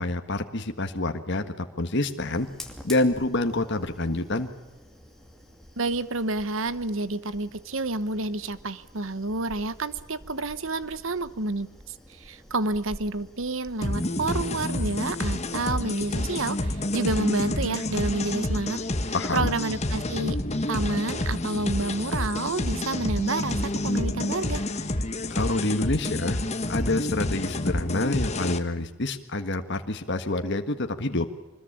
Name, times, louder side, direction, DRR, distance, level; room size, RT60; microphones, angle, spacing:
voice 1, 0.0-1.4 1.8-2.5 2.8-4.5 19.1-19.5 25.3-26.4 26.7-31.3, left 2 dB, 50° left, 6 dB, 1.6 m, -27 dB
Fire, 2.2-18.3, left 1 dB, ahead, 2.5 m, -49 dB
voice 2, 5.8-18.8 19.1-20.4 20.7-24.6, right 2 dB, 65° right, 15 dB, 1.2 m, -29 dB
sound 1, 13.8-28.6, left 1 dB, 30° left, 1.4 m, -29 dB
25.0 x 21.0 x 8.8 m, 1.0 s
head